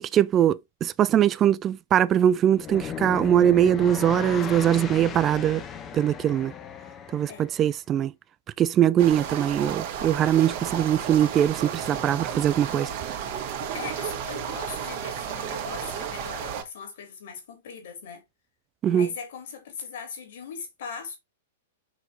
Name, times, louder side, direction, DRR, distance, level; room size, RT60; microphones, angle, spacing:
voice 1, 0.0-5.6 5.9-6.5 7.1-8.1 8.6-12.9 18.8-19.1, right 10 dB, 25° right, 0.4 m, -22 dB
sound 1, 2.5-7.6, left 7 dB, 25° left, 1.3 m, -36 dB
sound 2, 9.0-16.6, right 8 dB, 45° right, 2.1 m, -33 dB
voice 2, 13.7-18.2 18.9-21.2, left 6 dB, 60° left, 3.6 m, -39 dB
6.2 x 5.9 x 3.8 m
figure-of-eight pair, 105°, 0 cm